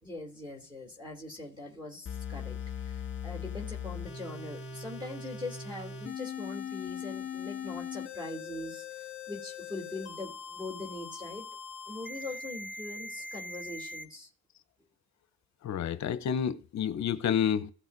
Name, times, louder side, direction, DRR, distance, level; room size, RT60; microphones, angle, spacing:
voice 1, 0.0-11.5 11.9-14.3, left 2 dB, 10° right, 2.9 m, -42 dB
sound 1, 2.1-14.0, left 6 dB, 30° left, 2.0 m, -40 dB
voice 2, 15.6-17.7, left 8 dB, 45° left, 0.8 m, -29 dB
16.5 x 6.0 x 2.7 m
supercardioid pair, 95°, 39 cm